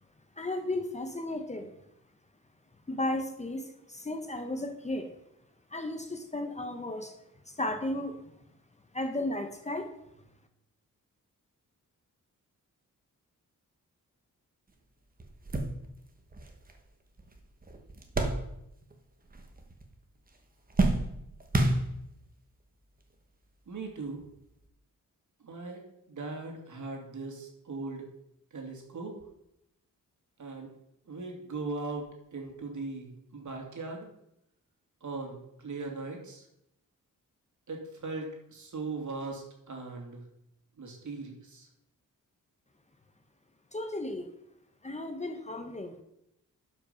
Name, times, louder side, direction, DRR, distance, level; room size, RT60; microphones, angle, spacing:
voice 1, 0.4-1.7 2.9-5.1 5.7-7.1 7.5-8.2 8.9-9.9 43.7-44.3 44.8-46.0, left 1 dB, 20° left, 6 dB, 0.9 m, -34 dB
sound 1, 14.7-14.8 15.2-19.0 19.2-20.0 20.3-22.3 23.1-23.2 24.5-24.6, right 2 dB, 25° right, 1.3 m, -31 dB
voice 2, 23.7-24.2 25.4-25.8 26.1-28.1 28.5-29.1 30.4-30.7 31.1-32.1 32.3-34.1 35.0-36.4 37.7-40.2 40.8-41.7, right 3 dB, 60° right, 1 dB, 2.5 m, -39 dB
12.0 x 5.5 x 5.6 m, 0.81 s
wide cardioid pair, 155°, 33 cm